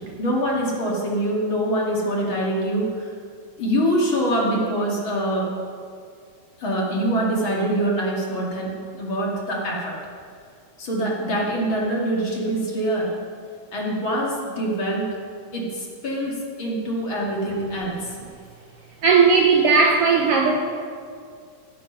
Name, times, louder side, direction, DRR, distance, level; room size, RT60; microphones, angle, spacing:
voice 1, 0.2-3.1 3.6-5.5 6.6-10.0 10.8-13.1 13.7-15.1 15.5-18.2, right 1 dB, 45° left, -3 dB, 2.6 m, -24 dB
voice 2, 19.0-20.5, right 5 dB, 70° right, 1 dB, 1.5 m, -16 dB
17.0 x 7.7 x 5.5 m, 2.3 s
omnidirectional pair, 3.3 m